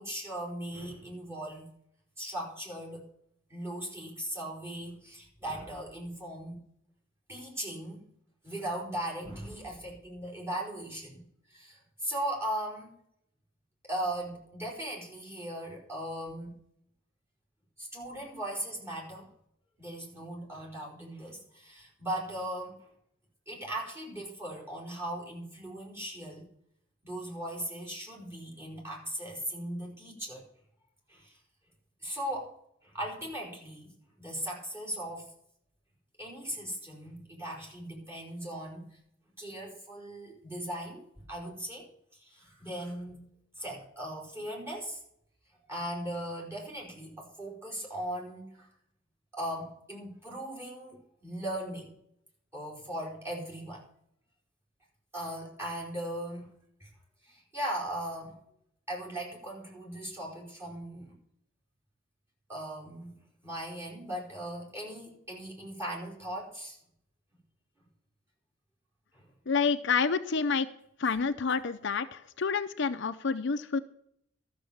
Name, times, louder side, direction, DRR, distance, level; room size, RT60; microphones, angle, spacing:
voice 1, 0.0-1.7 2.2-3.1 3.5-6.6 7.3-8.1 8.4-11.2 11.5-12.9 13.9-16.5 17.8-19.3 19.8-22.8 23.5-26.5 27.0-30.5 31.1-31.3 32.0-32.6 32.8-33.9 34.2-35.3 36.2-38.9 39.4-41.9 42.2-43.2 43.6-45.0 45.7-48.7 49.3-51.9 52.5-53.8 55.1-56.5 56.8-56.9 57.2-58.4 58.9-61.1 62.5-63.1 63.4-66.8 69.1-69.2, right 1 dB, 15° right, -2 dB, 5.0 m, -38 dB
voice 2, 69.5-70.7 71.0-73.8, left 5 dB, 65° left, 9 dB, 0.6 m, -28 dB
13.5 x 6.9 x 7.0 m, 0.70 s
head